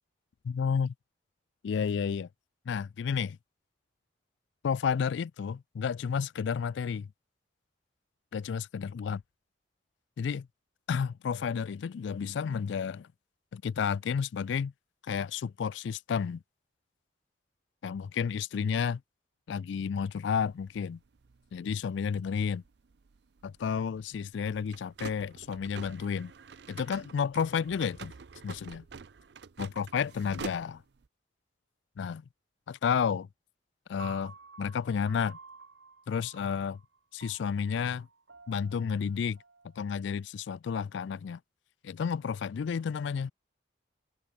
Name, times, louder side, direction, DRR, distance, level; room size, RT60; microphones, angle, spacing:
voice 1, 0.4-0.9 1.6-2.3 2.7-3.4 4.6-7.1 8.3-9.2 10.2-10.5 10.9-13.1 13.5-14.7 15.0-16.4 17.8-19.0 19.5-21.0 21.5-22.6 23.4-26.3 26.7-28.1 28.4-28.8 29.6-30.8 32.0-32.2 32.7-33.3 33.9-35.4 36.1-36.8 37.1-38.1 38.5-39.4 39.8-41.4 41.8-43.3, left 6 dB, 70° left, 0.3 m, -31 dB
sound 1, 20.3-31.1, right 5 dB, 60° right, 0.5 m, -48 dB
Piano, 34.0-40.2, right 4 dB, 75° right, 2.9 m, -52 dB
open air
head